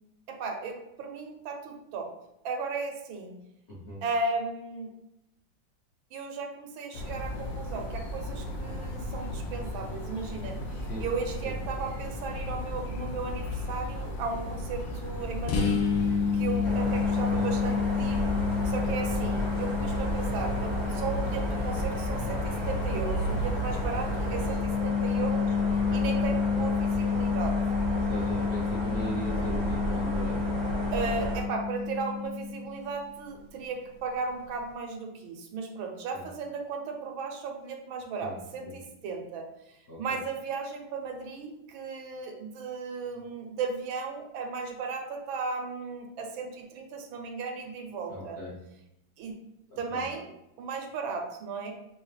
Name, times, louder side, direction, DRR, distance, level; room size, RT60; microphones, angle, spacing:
voice 1, 0.3-2.1 2.4-3.4 4.0-4.9 6.1-10.6 11.0-15.8 16.3-18.3 18.6-25.6 25.9-27.6 30.9-39.5 40.0-48.4 49.2-49.3 49.8-50.3 50.6-51.7, right 4 dB, 80° right, 3 dB, 1.5 m, -35 dB
voice 2, 3.7-4.0 10.7-11.0 11.4-11.5 17.3-17.5 18.8-19.0 25.7-26.1 27.9-30.4 36.1-36.3 38.2-38.4 38.6-38.7 39.9-40.2 48.1-48.5 49.7-50.0, equal, 50° left, -7 dB, 0.9 m, -39 dB
sound 1, 6.9-24.6, left 1 dB, 70° left, 1.4 m, -35 dB
sound 2, 15.5-33.0, left 6 dB, 85° left, 1.5 m, -30 dB
sound 3, 16.6-31.4, right 1 dB, 25° right, 0.6 m, -33 dB
5.5 x 2.8 x 3.2 m, 0.86 s
omnidirectional pair, 2.2 m